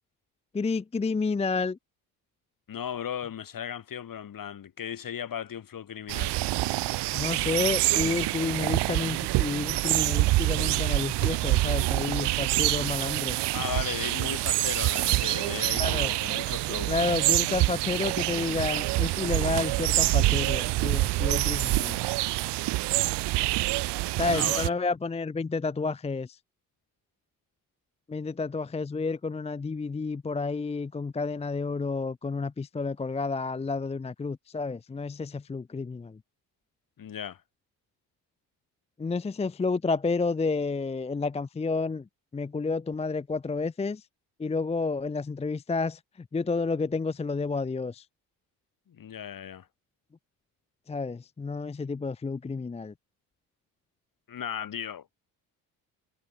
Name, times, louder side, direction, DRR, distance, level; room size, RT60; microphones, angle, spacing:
voice 1, 0.5-1.8 7.1-13.4 15.8-16.1 16.9-22.0 24.2-26.4 28.1-36.2 39.0-42.0 42.3-44.0 44.4-46.0 46.3-48.0 50.9-52.9, left 4 dB, 15° left, 0.6 m, -30 dB
voice 2, 2.7-6.4 13.5-16.9 24.3-24.7 37.0-37.4 48.9-49.7 54.3-55.1, left 9 dB, 50° left, 2.5 m, -36 dB
sound 1, 6.1-24.7, right 19 dB, 65° right, 0.8 m, -26 dB
supercardioid pair, 65°, 44 cm